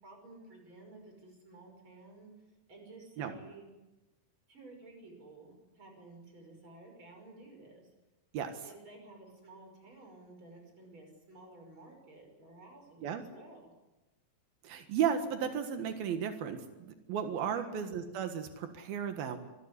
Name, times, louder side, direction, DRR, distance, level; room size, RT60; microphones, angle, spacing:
voice 1, 0.0-2.3 2.7-3.7 4.5-7.9 8.6-13.7 17.5-17.7, right 2 dB, 35° right, 3 dB, 6.7 m, -53 dB
voice 2, 14.6-19.4, right 8 dB, 90° right, 6 dB, 3.5 m, -34 dB
25.0 x 16.0 x 9.9 m, 1.1 s
omnidirectional pair, 4.1 m